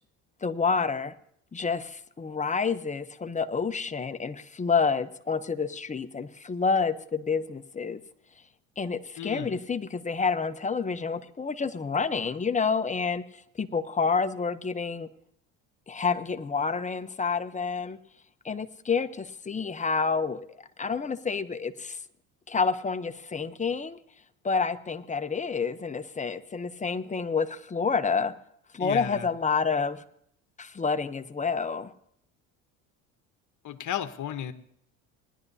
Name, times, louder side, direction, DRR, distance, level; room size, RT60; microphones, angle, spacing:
voice 1, 0.4-1.2 1.5-8.0 8.8-15.1 15.9-18.0 18.4-22.0 22.5-24.0 24.4-28.3 28.7-30.0 30.6-31.9, left 5 dB, 20° left, 0.8 m, -29 dB
voice 2, 9.2-9.6 28.8-29.3 33.6-34.5, left 10 dB, 50° left, 1.1 m, -34 dB
20.0 x 11.0 x 2.8 m
supercardioid pair, 75°, 39 cm